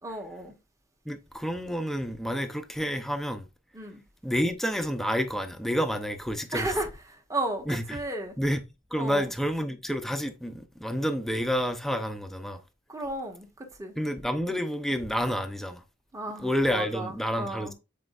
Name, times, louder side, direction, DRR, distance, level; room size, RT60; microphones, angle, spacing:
voice 1, 0.0-0.6 3.7-4.0 6.5-8.4 9.0-9.3 12.9-13.9 16.1-17.7, right 2 dB, 15° right, 1.4 m, -34 dB
voice 2, 1.0-3.5 4.2-6.8 7.7-8.0 8.4-8.6 8.9-12.6 14.0-15.8 16.4-17.7, equal, ahead, 0.7 m, -29 dB
8.4 x 4.5 x 2.5 m
head